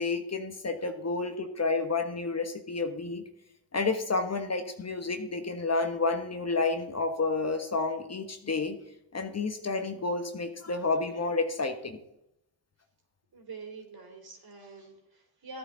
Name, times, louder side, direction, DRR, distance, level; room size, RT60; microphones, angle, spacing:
voice 1, 0.0-3.2 3.7-8.8 9.1-12.0, left 3 dB, 30° left, 6 dB, 1.3 m, -30 dB
voice 2, 13.3-15.6, right 3 dB, 45° right, 2 dB, 3.7 m, -45 dB
13.5 x 9.4 x 4.0 m, 0.83 s
hypercardioid pair, 50°, 49 cm